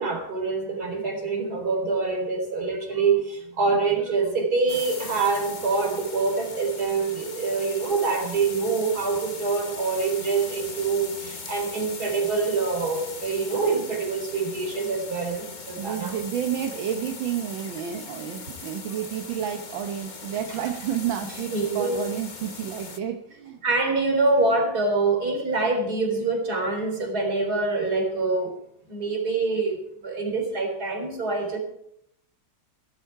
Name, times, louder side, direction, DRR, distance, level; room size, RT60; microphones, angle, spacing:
voice 1, 0.0-16.2 21.5-22.0 23.6-28.5 28.9-29.8 30.0-31.6, right 4 dB, 50° right, 2 dB, 4.5 m, -25 dB
sound 1, 4.7-23.0, left 4 dB, 30° left, 0.9 m, -39 dB
voice 2, 15.8-23.6, right 9 dB, 80° right, 4 dB, 1.7 m, -30 dB
17.5 x 14.0 x 4.7 m, 0.75 s
omnidirectional pair, 2.1 m